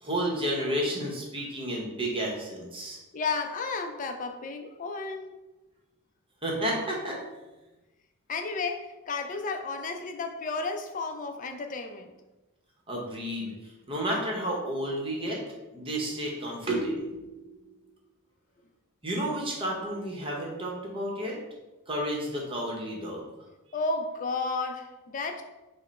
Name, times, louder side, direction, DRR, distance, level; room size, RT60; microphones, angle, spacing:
voice 1, 0.0-3.0 6.4-7.2 12.9-13.5 13.9-15.5 15.7-17.6 19.0-21.4 21.9-23.2, right 1 dB, 25° right, -1 dB, 0.9 m, -31 dB
voice 2, 3.1-5.4 8.3-12.1 23.7-25.4, left 3 dB, 35° left, 5 dB, 0.4 m, -32 dB
5.3 x 2.1 x 4.1 m, 1.1 s
head